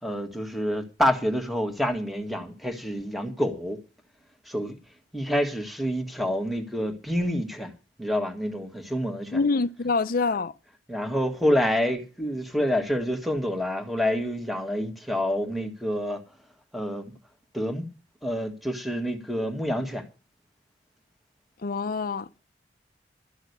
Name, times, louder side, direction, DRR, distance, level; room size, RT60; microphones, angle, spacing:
voice 1, 0.0-3.8 4.4-4.8 5.1-7.7 8.0-9.4 10.9-16.2 16.7-17.1 17.5-17.9 18.2-20.0, equal, ahead, 1.7 m, -27 dB
voice 2, 9.3-10.5 21.6-22.3, left 4 dB, 50° left, 0.6 m, -25 dB
13.0 x 6.3 x 9.5 m
head